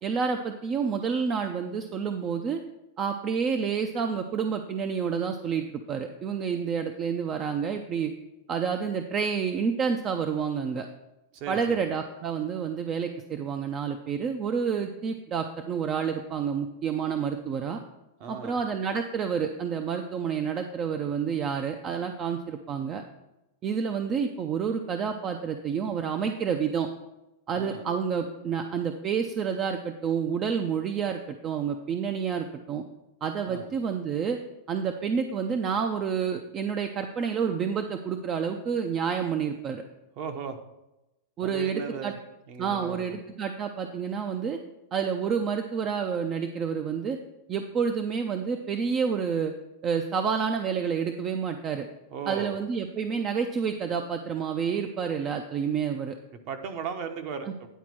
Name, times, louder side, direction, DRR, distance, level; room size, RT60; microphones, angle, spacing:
voice 1, 0.0-2.6 3.0-8.1 8.5-10.9 11.5-17.8 18.3-23.0 23.6-26.9 27.5-32.8 33.2-34.4 34.7-39.8 41.4-42.1 42.6-44.6 44.9-47.2 47.5-49.5 49.8-51.9 52.3-56.2, right 6 dB, 30° right, 6 dB, 0.6 m, -29 dB
voice 2, 11.3-11.8 18.2-18.6 27.5-27.9 33.5-33.7 40.2-40.6 41.4-42.2 42.5-43.2 52.1-52.6 56.3-57.7, right 6 dB, 45° right, 6 dB, 1.1 m, -37 dB
10.0 x 4.2 x 6.2 m, 0.95 s
supercardioid pair, 145°, 0 cm